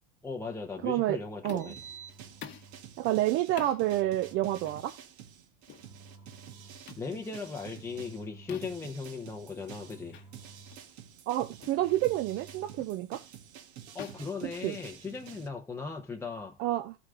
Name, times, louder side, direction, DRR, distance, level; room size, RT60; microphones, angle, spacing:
voice 1, 0.2-1.8 7.0-10.2 13.9-16.6, left 4 dB, 5° left, 0.8 m, -38 dB
voice 2, 0.8-1.2 1.4-1.7 3.0-4.9 11.3-13.2 14.6-14.8 16.6-17.0, right 14 dB, 40° right, 0.5 m, -29 dB
sound 1, 1.4-1.9 2.4-2.7 3.6-3.8 4.6-4.8 5.7-5.9 6.9-7.1 8.5-8.9 10.1-10.3 10.7-10.9 11.6-11.8 12.8-13.0 14.0-15.2, left 9 dB, 35° left, 1.2 m, -47 dB
Engine, 1.4-2.9 3.7-4.9 5.7-7.0 7.7-9.0 9.7-11.0 11.7-12.9, right 4 dB, 25° right, 1.7 m, -52 dB
sound 2, 1.8-8.2 8.6-15.5, right 10 dB, 75° right, 1.6 m, -50 dB
14.0 x 5.0 x 3.7 m
supercardioid pair, 145°, 32 cm